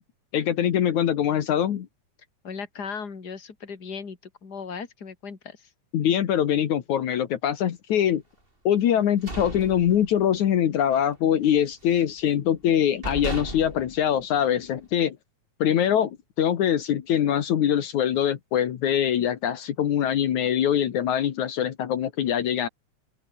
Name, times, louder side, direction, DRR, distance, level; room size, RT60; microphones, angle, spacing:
voice 1, 0.3-1.9 5.9-8.2 8.6-15.2 15.6-22.7, left 10 dB, 75° left, 3.0 m, -23 dB
voice 2, 2.4-5.7, left 5 dB, 30° left, 3.4 m, -37 dB
sound 1, 8.9-10.5 10.8-11.1 11.4-12.2 12.7-12.8 13.0-14.9, right 1 dB, 15° right, 7.1 m, -36 dB
open air
omnidirectional pair, 3.5 m